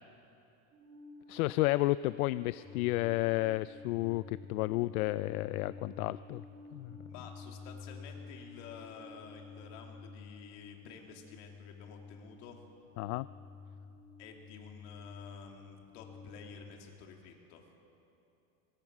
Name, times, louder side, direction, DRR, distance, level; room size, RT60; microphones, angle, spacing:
Alarm, 0.7-9.6, left 2 dB, 25° right, 4.0 m, -53 dB
voice 1, 1.3-6.4 6.7-7.0 13.0-13.3, left 19 dB, 80° left, 16 dB, 0.5 m, -31 dB
sound 1, 2.6-16.7, left 5 dB, 10° left, 2.0 m, -51 dB
voice 2, 7.1-12.6 14.2-17.7, left 6 dB, 55° left, 2 dB, 2.9 m, -51 dB
23.0 x 20.0 x 6.1 m, 2.8 s
supercardioid pair, 165°, 42 cm